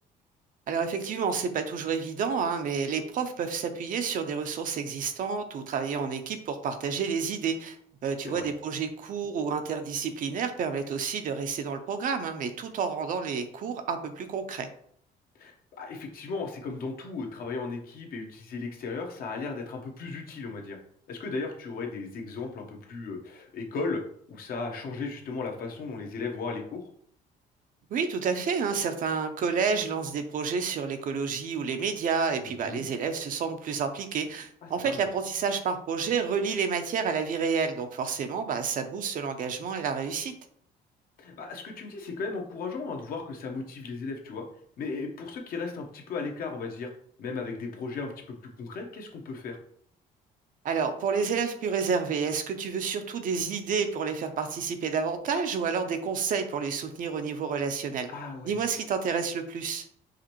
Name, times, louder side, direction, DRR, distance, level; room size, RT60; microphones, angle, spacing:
voice 1, 0.7-7.8 8.0-14.7 27.9-40.3 50.6-58.1 58.4-59.8, right 6 dB, 50° right, 7 dB, 0.6 m, -30 dB
voice 2, 15.4-20.8 21.1-24.0 24.3-26.8 32.4-32.8 34.6-35.0 41.2-44.4 44.8-46.9 47.2-49.6 58.1-58.6, left 4 dB, 60° left, 2 dB, 0.9 m, -36 dB
4.9 x 2.6 x 3.0 m, 0.65 s
cardioid pair, 110°, 17 cm